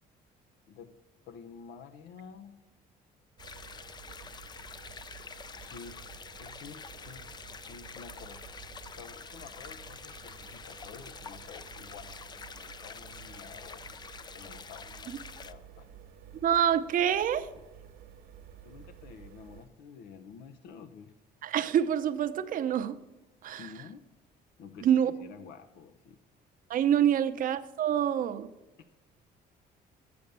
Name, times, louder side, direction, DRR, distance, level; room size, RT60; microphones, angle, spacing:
voice 1, 1.2-2.6 5.6-6.0 6.4-7.3 7.7-8.5 8.9-13.8 14.3-15.9 18.6-21.1 23.6-24.0 24.6-26.2, left 6 dB, 75° left, 0.7 m, -50 dB
sound 1, 3.4-15.5, left 5 dB, 25° left, 0.4 m, -47 dB
sound 2, 3.4-19.7, right 8 dB, 75° right, 1.1 m, -52 dB
voice 2, 16.4-17.5 21.4-23.0 23.4-23.8 24.8-25.1 26.7-28.5, right 9 dB, 55° right, 0.7 m, -26 dB
7.8 x 6.8 x 6.8 m
cardioid pair, 110°, 17 cm